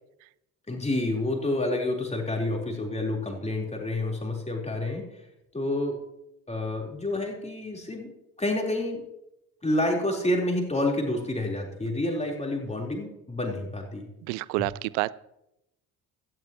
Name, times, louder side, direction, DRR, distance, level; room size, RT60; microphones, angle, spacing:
voice 1, 0.7-5.0 5.5-6.0 6.5-8.1 8.4-9.0 9.6-14.1, left 1 dB, 15° left, 0 dB, 4.1 m, -28 dB
voice 2, 14.3-15.1, right 21 dB, 60° right, 21 dB, 0.6 m, -28 dB
17.0 x 13.5 x 3.1 m, 0.86 s
figure-of-eight pair, 50°, 46 cm